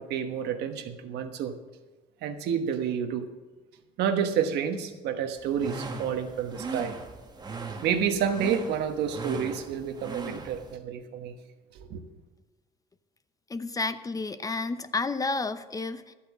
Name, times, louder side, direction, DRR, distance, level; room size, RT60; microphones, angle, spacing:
voice 1, 0.0-1.5 2.2-3.2 4.0-7.0 7.8-11.3 11.9-12.0, right 8 dB, 80° right, 7 dB, 1.2 m, -29 dB
sound 1, 5.4-10.8, right 3 dB, 25° right, 1.3 m, -39 dB
voice 2, 13.5-16.1, left 3 dB, 20° left, 12 dB, 0.7 m, -31 dB
12.0 x 8.5 x 7.3 m, 1.2 s
cardioid pair, 110°, 17 cm